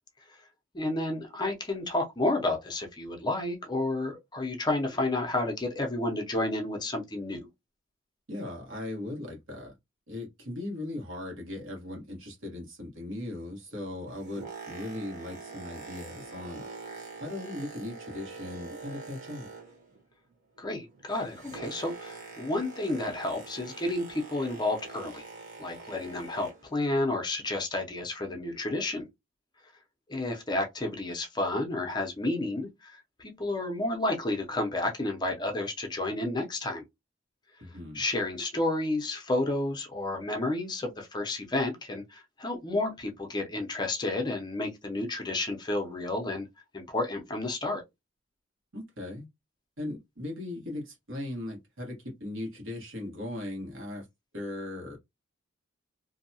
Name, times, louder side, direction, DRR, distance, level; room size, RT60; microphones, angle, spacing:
voice 1, 0.7-7.5 20.6-25.2 25.6-29.1 30.1-36.8 37.9-46.5 46.7-47.8, left 2 dB, 20° left, 0.5 m, -31 dB
voice 2, 8.3-9.7 10.1-16.6 17.2-19.5 37.6-38.0 48.7-49.3 49.8-54.1 54.3-55.0, left 1 dB, 80° right, 1.3 m, -38 dB
Boat Water vehicle, 14.0-20.0 20.3-26.8 27.4-27.5, right 4 dB, 40° right, 1.0 m, -45 dB
2.6 x 2.2 x 2.7 m
head